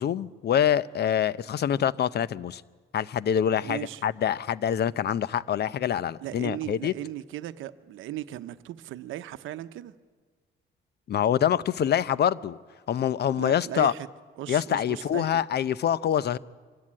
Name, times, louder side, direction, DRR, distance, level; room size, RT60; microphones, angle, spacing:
voice 1, 0.0-2.6 2.9-6.9 11.1-12.6 12.9-13.9 14.5-16.4, left 9 dB, 55° left, 0.7 m, -25 dB
voice 2, 3.6-4.0 6.2-9.9 13.4-14.1 14.4-15.4, right 13 dB, 85° right, 0.8 m, -37 dB
24.0 x 14.0 x 10.0 m
cardioid pair, 90°, 20 cm